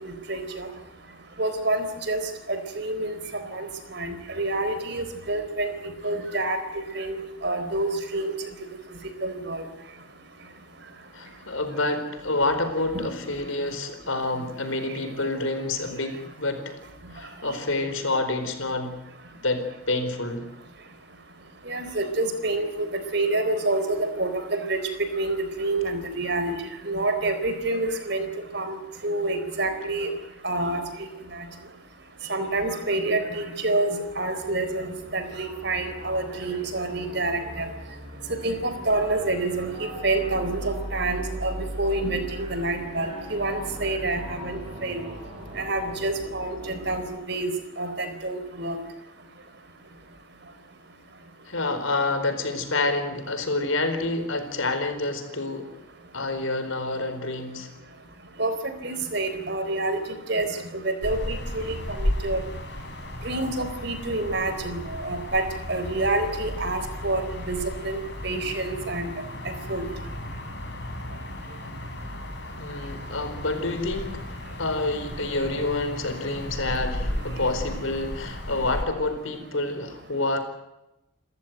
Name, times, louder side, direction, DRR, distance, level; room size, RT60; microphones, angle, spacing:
voice 1, 0.0-0.7 1.4-2.2 2.7-3.2 3.5-5.7 6.0-6.6 7.0-8.3 9.2-9.6 12.9-13.1 21.7-26.5 26.9-28.3 28.5-28.8 29.0-30.1 30.4-30.8 32.3-37.7 38.4-41.5 41.8-45.0 45.6-47.5 47.8-48.8 58.4-58.5 58.8-60.0 60.3-60.5 60.8-62.4 63.2-65.4 65.7-67.2 67.5-67.6 67.8-69.1 69.7-69.8, right 2 dB, 55° right, 9 dB, 4.0 m, -27 dB
voice 2, 11.1-16.8 17.1-19.0 19.4-20.4 51.5-55.7 56.1-57.7 72.6-74.2 74.6-80.4, left 2 dB, 75° left, 8 dB, 4.4 m, -28 dB
sound 1, 34.4-47.2, right 1 dB, 30° right, 5.7 m, -39 dB
sound 2, 61.0-78.9, left 1 dB, 55° left, 3.4 m, -34 dB
29.0 x 15.0 x 9.3 m, 0.93 s
head